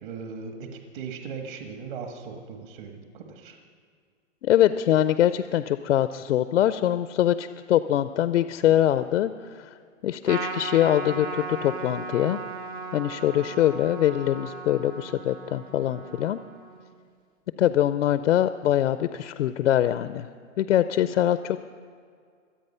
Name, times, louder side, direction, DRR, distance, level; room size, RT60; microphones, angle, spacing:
voice 1, 0.0-3.6, right 5 dB, 40° right, 4 dB, 1.6 m, -38 dB
voice 2, 4.4-9.7 10.0-12.4 12.9-16.4 17.6-20.3 20.6-21.6, left 12 dB, 70° left, 12 dB, 0.6 m, -23 dB
Trumpet, 10.2-16.9, right 4 dB, 20° right, 0.4 m, -37 dB
24.5 x 8.4 x 5.6 m, 2.1 s
hypercardioid pair, 155°, 38 cm